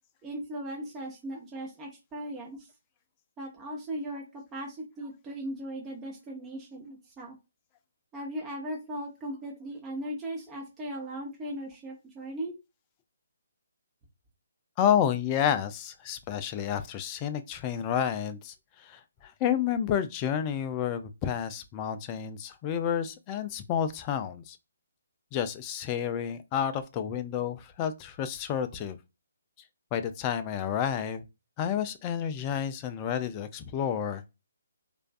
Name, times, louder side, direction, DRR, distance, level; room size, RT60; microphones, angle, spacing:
voice 1, 0.2-2.7 3.4-7.4 8.1-12.5, right 1 dB, 15° right, 0.6 m, -38 dB
voice 2, 14.8-24.6 25.3-29.0 29.9-31.2 31.6-34.2, left 9 dB, 25° left, 0.3 m, -30 dB
2.4 x 2.2 x 2.3 m
figure-of-eight pair, 140°, 0 cm